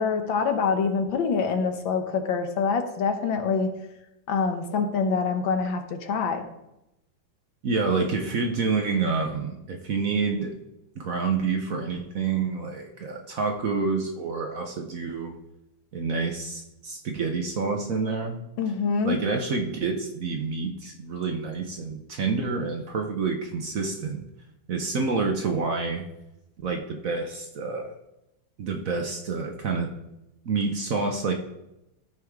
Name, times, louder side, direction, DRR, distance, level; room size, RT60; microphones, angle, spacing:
voice 1, 0.0-3.7 4.3-6.5 18.6-19.2, left 5 dB, 80° left, 6 dB, 1.7 m, -25 dB
voice 2, 7.6-10.6 10.9-15.4 15.9-18.4 19.0-24.2 24.7-26.0 26.6-27.9 28.6-29.9 30.4-31.3, right 4 dB, 55° right, 3 dB, 1.0 m, -28 dB
14.0 x 4.7 x 3.6 m, 0.89 s
omnidirectional pair, 2.1 m